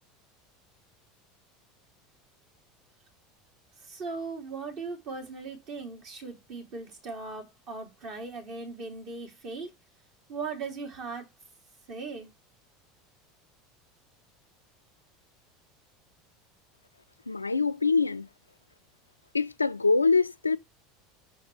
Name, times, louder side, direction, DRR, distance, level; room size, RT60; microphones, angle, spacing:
voice 1, 3.8-9.7 10.3-11.3 11.9-12.3, right 4 dB, 50° right, 2.9 m, -38 dB
voice 2, 17.3-18.3 19.3-20.6, left 4 dB, 85° left, 0.3 m, -24 dB
6.2 x 5.6 x 3.2 m
figure-of-eight pair, 75°, 0 cm